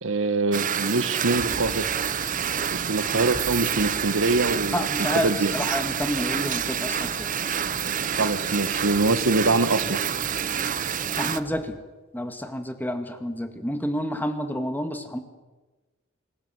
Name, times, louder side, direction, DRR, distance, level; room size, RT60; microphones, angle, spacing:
voice 1, 0.0-1.9 2.7-5.5 8.2-10.0, right 2 dB, 85° right, 13 dB, 1.3 m, -24 dB
sound 1, 0.5-11.4, right 8 dB, 40° right, 0.8 m, -28 dB
sound 2, 1.3-11.6, equal, 10° right, 7.0 m, -44 dB
voice 2, 4.7-7.3 11.2-11.8 12.1-15.2, equal, 10° left, 7 dB, 2.0 m, -29 dB
25.5 x 17.0 x 7.7 m, 1.2 s
head